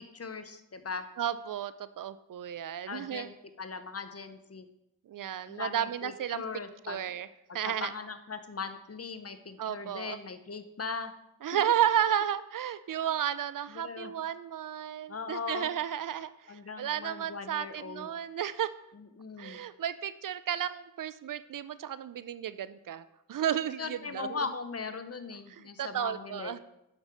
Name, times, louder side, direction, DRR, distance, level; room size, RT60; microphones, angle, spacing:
voice 1, 0.0-1.0 2.9-3.3 3.6-4.7 5.5-7.0 7.5-11.1 13.7-14.1 15.1-15.7 16.5-18.1 18.9-19.6 23.8-26.6, left 5 dB, 40° left, 10 dB, 0.9 m, -39 dB
voice 2, 1.2-3.3 5.1-6.4 6.8-7.3 7.5-7.9 9.6-10.2 11.4-18.7 19.4-23.0 23.3-24.4 25.5-26.6, right 10 dB, 60° right, 15 dB, 0.5 m, -33 dB
6.4 x 6.0 x 4.9 m, 0.84 s
cardioid pair, 40°, 37 cm